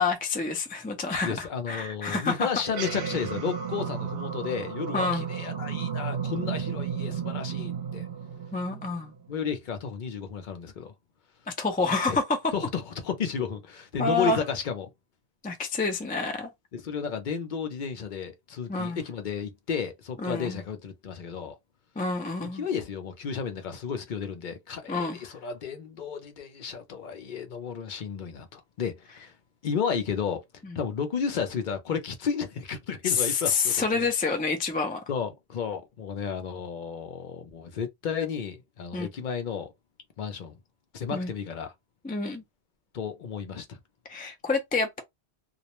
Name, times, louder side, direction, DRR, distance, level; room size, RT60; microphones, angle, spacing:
voice 1, 0.0-2.5 4.9-5.3 8.5-9.1 11.5-12.5 14.0-14.4 15.4-16.5 18.7-19.0 20.2-20.6 22.0-22.6 24.9-25.2 30.6-30.8 33.0-35.0 38.9-39.1 41.1-41.3 42.0-42.4 44.1-45.0, left 4 dB, 15° left, 0.3 m, -28 dB
voice 2, 1.2-8.1 9.3-10.9 12.1-12.2 12.5-14.9 16.7-21.5 22.5-29.3 29.6-30.4 30.7-34.1 35.1-39.7 40.2-40.6 40.9-41.7 42.9-43.8, left 6 dB, 55° left, 0.6 m, -33 dB
sound 1, 2.6-9.3, right 7 dB, 70° right, 0.9 m, -33 dB
2.4 x 2.1 x 2.9 m
omnidirectional pair, 1.2 m